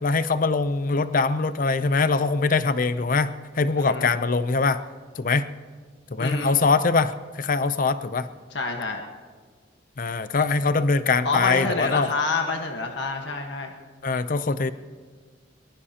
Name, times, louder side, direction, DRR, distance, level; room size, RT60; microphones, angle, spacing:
voice 1, 0.0-4.8 5.2-5.5 6.1-7.1 7.4-8.3 10.0-12.1 14.0-14.7, left 4 dB, 45° left, 13 dB, 0.6 m, -23 dB
voice 2, 3.8-4.1 6.2-6.5 8.5-9.0 11.2-13.7, left 3 dB, 60° left, 3 dB, 1.4 m, -27 dB
23.0 x 20.5 x 2.9 m, 1.5 s
head